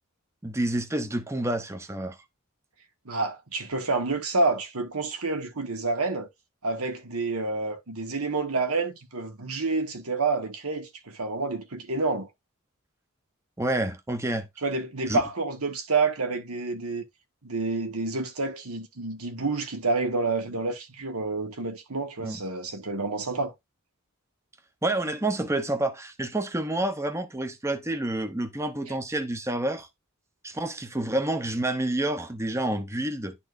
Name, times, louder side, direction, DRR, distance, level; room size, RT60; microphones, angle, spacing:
voice 1, 0.4-2.2 13.6-14.5 15.1-15.2 22.2-22.4 24.8-29.9 30.4-33.3, right 1 dB, 15° right, 0.8 m, -28 dB
voice 2, 3.1-6.3 6.6-12.3 14.6-17.0 17.4-23.5 28.9-29.0, right 3 dB, 90° right, 1.7 m, -28 dB
11.5 x 4.3 x 2.6 m
head